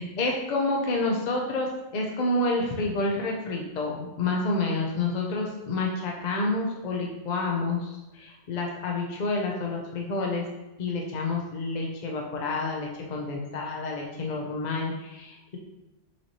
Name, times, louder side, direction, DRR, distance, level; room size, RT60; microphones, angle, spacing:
voice 1, 0.0-10.4 10.8-15.6, left 2 dB, 50° left, -1 dB, 0.5 m, -29 dB
5.8 x 2.9 x 2.8 m, 1.0 s
omnidirectional pair, 1.3 m